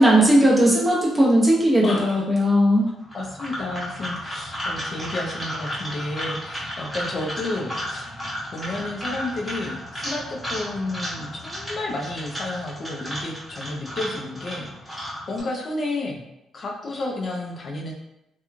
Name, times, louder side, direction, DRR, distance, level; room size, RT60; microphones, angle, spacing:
voice 1, 0.0-2.9, equal, 10° right, -5 dB, 0.9 m, -17 dB
voice 2, 1.8-2.3 3.1-8.1 8.5-16.2 16.5-17.9, left 2 dB, 50° left, -1 dB, 0.5 m, -31 dB
sound 1, 3.0-15.4, equal, 5° left, 1.2 m, -33 dB
2.9 x 2.2 x 2.4 m, 0.84 s
cardioid pair, 90°, 0 cm